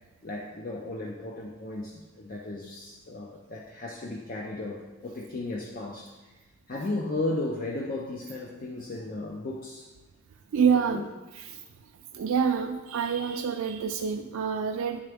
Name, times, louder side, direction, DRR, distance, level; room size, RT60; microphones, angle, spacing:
voice 1, 0.2-6.3 6.7-9.9 10.7-11.0, left 2 dB, 45° left, -1 dB, 0.5 m, -35 dB
voice 2, 10.5-11.0 11.3-11.7 12.1-15.0, right 6 dB, 80° right, 4 dB, 0.3 m, -27 dB
9.7 x 3.8 x 3.4 m, 1.1 s
head